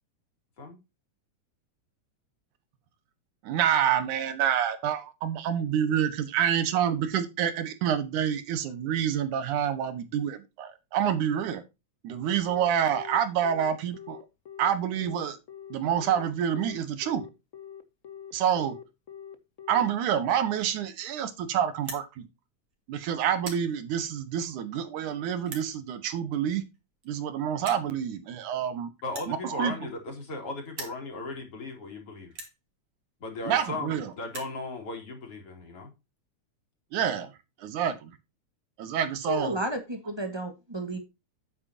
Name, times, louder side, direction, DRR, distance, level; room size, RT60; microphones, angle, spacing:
voice 1, 3.4-11.6 12.0-14.2 14.6-15.4 15.7-17.2 18.3-18.7 19.7-22.3 22.9-26.6 27.1-28.9 29.3-29.9 33.4-34.1 36.9-37.3 37.6-38.1 38.8-39.6, right 9 dB, 90° right, 2.8 m, -27 dB
Telephone, 12.4-19.9, left 9 dB, 80° left, 0.7 m, -44 dB
sound 1, 21.7-22.1 22.7-22.9 23.3-23.7 24.4-24.5 25.4-25.7 26.7-26.8 27.0-27.1 27.6-27.9 29.0-30.4 30.7-31.0 31.7-31.8 32.3-32.6 33.5-33.6 33.8-33.9 34.1-34.6, right 3 dB, 50° right, 3.5 m, -41 dB
voice 2, 29.0-32.3 33.2-35.9, left 3 dB, 50° left, 3.9 m, -37 dB
voice 3, 39.3-41.0, right 1 dB, 20° right, 0.7 m, -32 dB
9.6 x 8.8 x 2.7 m
omnidirectional pair, 3.4 m